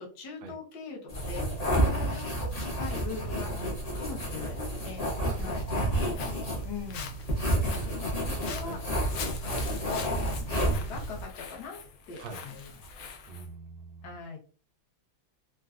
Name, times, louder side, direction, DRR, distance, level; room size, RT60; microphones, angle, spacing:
voice 1, 0.0-5.0 5.4-5.7 6.6-7.2 7.6-8.8 9.2-9.6 10.0-11.8 12.1-12.8 14.0-14.4, left 4 dB, 60° left, -1 dB, 1.4 m, -42 dB
sound 1, 1.1-11.2, right 1 dB, 45° left, 0.5 m, -30 dB
voice 2, 5.2-5.5 5.9-6.6 8.7-8.8 12.2-12.4 13.3-14.0, right 4 dB, 70° right, 5 dB, 1.0 m, -44 dB
Walk footsteps, 5.9-13.5, left 6 dB, 85° left, 0.7 m, -44 dB
3.9 x 2.2 x 2.4 m, 0.39 s
omnidirectional pair, 2.1 m